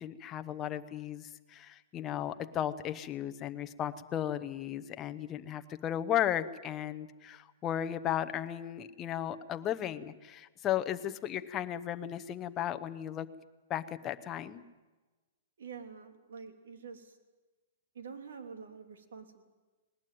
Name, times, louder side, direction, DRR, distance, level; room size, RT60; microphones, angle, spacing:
voice 1, 0.0-13.3 13.7-14.6, left 11 dB, 15° left, 10 dB, 0.8 m, -35 dB
voice 2, 15.6-17.2 17.9-19.4, right 6 dB, 80° right, 7 dB, 3.0 m, -47 dB
20.0 x 19.5 x 9.3 m, 1.2 s
hypercardioid pair, 170°, 0 cm